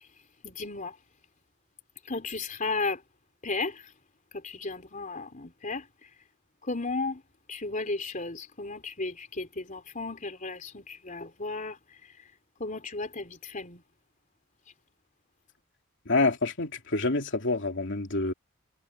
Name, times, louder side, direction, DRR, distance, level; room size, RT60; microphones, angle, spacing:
voice 1, 0.4-1.0 2.1-3.0 3.4-3.9 4.3-5.9 6.6-7.2 7.5-11.8 12.6-13.8, left 3 dB, 35° left, 4.0 m, -34 dB
voice 2, 16.0-18.3, left 2 dB, 60° left, 3.0 m, -27 dB
head